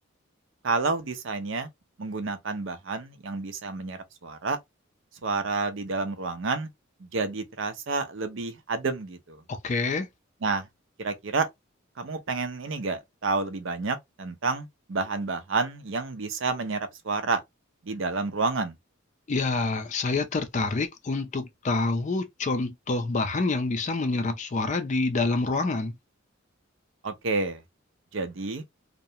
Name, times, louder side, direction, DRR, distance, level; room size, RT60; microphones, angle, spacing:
voice 1, 0.6-1.7 2.0-4.6 5.2-6.7 7.0-9.4 10.4-10.7 11.0-11.5 12.0-17.4 17.8-18.7 27.0-27.6 28.1-28.6, right 4 dB, 65° right, 0.5 m, -29 dB
voice 2, 9.5-10.1 19.3-25.9, left 3 dB, 35° left, 0.4 m, -27 dB
2.4 x 2.1 x 2.7 m
head